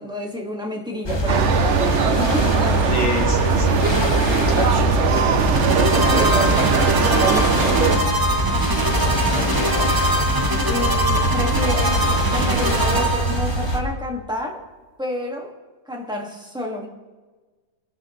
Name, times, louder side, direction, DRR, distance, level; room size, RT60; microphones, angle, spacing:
voice 1, 0.0-3.3 5.9-8.2 10.6-12.1 12.3-14.6 15.0-15.6 15.9-16.9, equal, ahead, 0 dB, 1.8 m, -29 dB
sound 1, 1.0-13.8, right 1 dB, 15° left, 1.1 m, -22 dB
sound 2, 1.3-8.0, right 6 dB, 55° right, 0.8 m, -21 dB
voice 2, 2.9-5.2 9.3-10.0, left 2 dB, 85° left, 2 dB, 2.8 m, -30 dB
sound 3, 5.3-13.8, right 1 dB, 35° right, 0.3 m, -24 dB
23.0 x 12.5 x 3.2 m, 1.3 s
omnidirectional pair, 2.1 m